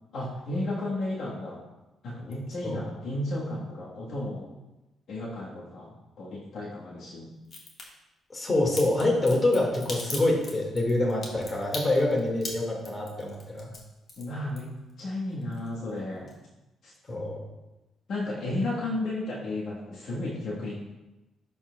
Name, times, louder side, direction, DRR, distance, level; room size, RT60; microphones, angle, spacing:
voice 1, 0.1-1.6 2.0-4.5 5.1-7.3 14.2-14.7 15.0-16.3 16.8-16.9 18.1-20.7, left 1 dB, 65° left, -5 dB, 1.4 m, -33 dB
Crack, 7.4-7.8 8.8-15.0 15.3-16.0 16.3-16.4, left 2 dB, 50° left, 1.6 m, -39 dB
voice 2, 8.3-13.7 17.1-17.4, left 2 dB, 30° left, -1 dB, 1.9 m, -26 dB
11.0 x 4.3 x 2.3 m, 1.0 s
cardioid pair, 90°, 0 cm